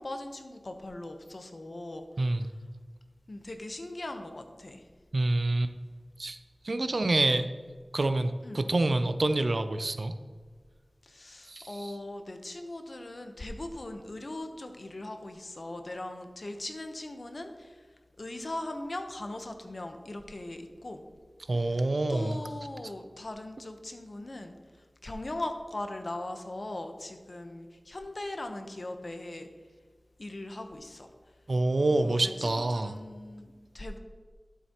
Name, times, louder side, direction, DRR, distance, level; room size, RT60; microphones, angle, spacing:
voice 1, 0.0-2.1 3.3-4.9 6.7-6.9 8.4-8.6 11.0-17.9 18.2-21.0 21.6-29.5 30.2-31.1 31.9-34.0, left 1 dB, 55° left, 6 dB, 0.9 m, -40 dB
voice 2, 5.1-5.7 6.2-6.4 6.6-7.5 7.9-10.1 11.5-11.9 21.5-22.4 31.5-33.0, right 2 dB, 65° right, 9 dB, 0.5 m, -27 dB
12.0 x 7.3 x 2.9 m, 1.5 s
wide cardioid pair, 55°, 0 cm